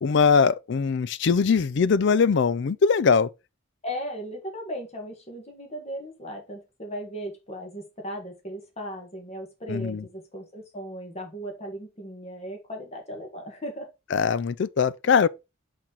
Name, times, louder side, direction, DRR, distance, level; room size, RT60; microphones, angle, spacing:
voice 1, 0.0-3.3 9.7-10.0 14.1-15.3, left 5 dB, 60° left, 0.4 m, -21 dB
voice 2, 3.8-13.9, equal, 30° left, 1.9 m, -37 dB
5.9 x 4.3 x 4.5 m
head